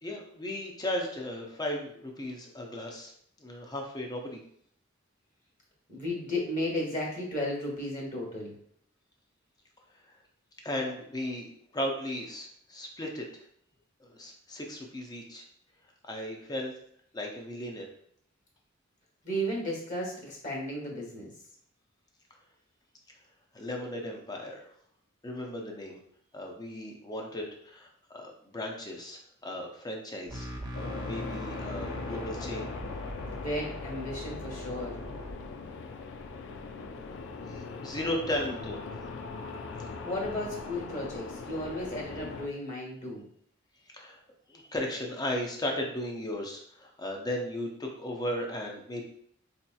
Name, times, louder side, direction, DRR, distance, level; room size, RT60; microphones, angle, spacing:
voice 1, 0.0-3.1 3.4-4.4 10.6-11.5 11.7-13.4 14.0-15.4 16.0-16.7 17.1-17.9 23.5-24.6 25.2-26.0 26.3-30.5 31.0-32.7 35.9-36.0 37.4-38.8 43.9-44.2 44.5-49.0, left 1 dB, 20° left, 1 dB, 0.6 m, -36 dB
voice 2, 5.9-8.5 19.2-21.3 33.4-35.0 40.0-43.2, left 1 dB, 40° left, -2 dB, 1.1 m, -34 dB
sound 1, 30.3-35.3, equal, 20° right, 0.5 m, -41 dB
sound 2, 30.7-42.5, left 4 dB, 65° left, 0.3 m, -40 dB
4.0 x 2.8 x 2.3 m, 0.63 s
head